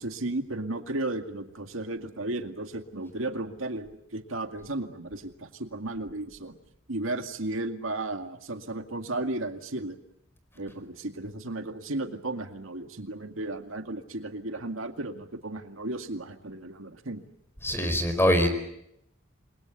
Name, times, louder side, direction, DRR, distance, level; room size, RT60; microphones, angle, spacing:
voice 1, 0.0-6.5 6.9-10.0 10.6-17.2, right 2 dB, 75° right, 6 dB, 2.2 m, -34 dB
voice 2, 17.6-18.5, equal, 10° left, 8 dB, 4.6 m, -23 dB
28.5 x 21.5 x 8.2 m, 0.78 s
head